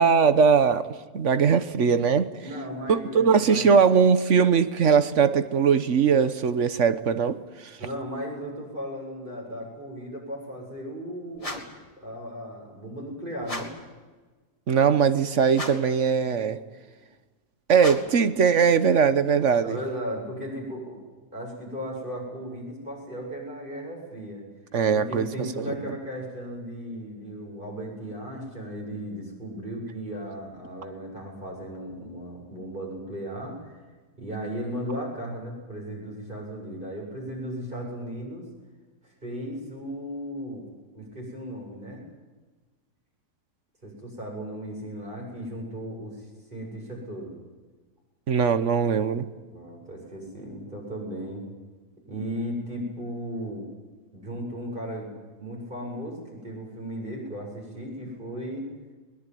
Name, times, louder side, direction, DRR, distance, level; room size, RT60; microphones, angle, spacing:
voice 1, 0.0-2.3 2.9-7.4 14.7-16.6 17.7-19.8 24.7-25.6 48.3-49.3, right 6 dB, 50° right, 1.3 m, -20 dB
voice 2, 2.4-3.7 7.8-11.6 12.0-13.7 19.5-21.0 21.3-24.4 24.9-33.8 34.2-38.5 39.0-40.7 40.9-42.1 43.8-46.3 46.5-47.3 49.5-51.4 52.1-53.6 54.1-55.1 55.4-58.7, equal, 30° right, 7.6 m, -36 dB
sound 1, 11.4-11.9 13.4-13.9 15.5-16.0 17.8-18.3, left 1 dB, 20° left, 2.4 m, -36 dB
21.5 x 20.5 x 9.2 m
omnidirectional pair, 1.7 m